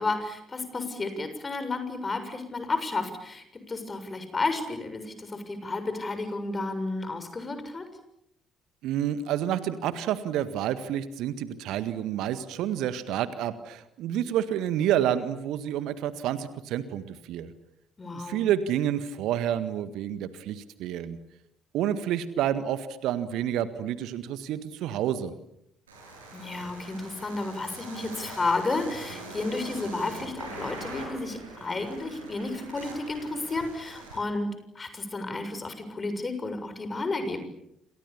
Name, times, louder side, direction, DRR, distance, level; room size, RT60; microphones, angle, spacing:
voice 1, 0.0-7.9 18.0-18.5 26.3-34.5 34.8-37.5, left 3 dB, 25° left, 9 dB, 7.1 m, -32 dB
voice 2, 8.8-17.5 18.1-21.2 21.7-25.3, right 10 dB, 60° right, 13 dB, 1.7 m, -29 dB
sound 1, 25.9-34.2, right 2 dB, 80° right, 7.9 m, -43 dB
28.5 x 28.0 x 7.2 m, 0.77 s
figure-of-eight pair, 50°, 0 cm